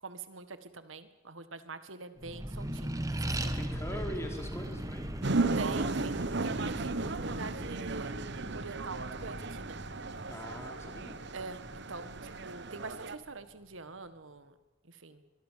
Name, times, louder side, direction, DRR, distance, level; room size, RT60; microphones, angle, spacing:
voice 1, 0.0-3.6 5.6-9.8 11.3-14.5 14.8-15.2, right 3 dB, 80° right, 11 dB, 1.8 m, -45 dB
Accelerating revving vroom, 2.2-13.1, right 1 dB, 20° right, 1.7 m, -39 dB
voice 2, 3.5-5.2 10.3-11.2, equal, 15° left, 3 dB, 4.5 m, -42 dB
sound 1, 5.2-13.2, right 3 dB, 60° right, 1.1 m, -35 dB
24.0 x 23.5 x 7.6 m, 1.0 s
head